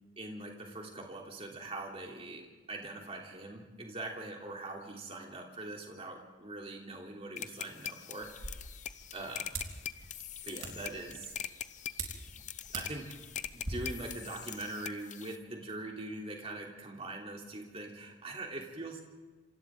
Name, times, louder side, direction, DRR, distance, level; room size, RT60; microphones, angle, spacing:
voice 1, 0.2-8.6 9.1-9.7 10.4-11.4 12.3-13.2 13.5-19.0, right 2 dB, 30° right, 0 dB, 3.3 m, -43 dB
sound 1, 7.4-15.4, left 10 dB, 40° left, 0.7 m, -43 dB
sound 2, 8.2-13.7, right 3 dB, 90° right, 3.7 m, -45 dB
27.5 x 27.0 x 3.9 m, 1.3 s
head